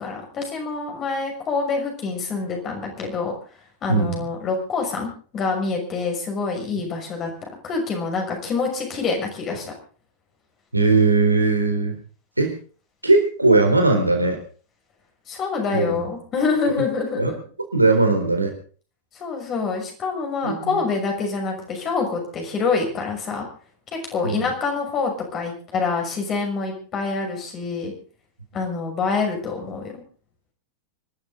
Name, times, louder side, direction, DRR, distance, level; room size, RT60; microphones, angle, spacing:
voice 1, 0.0-3.3 3.8-7.3 7.6-9.6 15.3-17.4 19.1-23.5 23.9-27.9 28.5-30.0, left 4 dB, 30° left, 2 dB, 6.2 m, -26 dB
voice 2, 10.7-11.9 12.4-12.5 13.0-14.4 15.7-16.1 17.2-17.3 17.7-18.5 20.4-20.8 24.2-24.5, right 3 dB, 85° right, 5 dB, 4.1 m, -19 dB
25.5 x 12.5 x 4.0 m, 0.41 s
figure-of-eight pair, 90°, 0 cm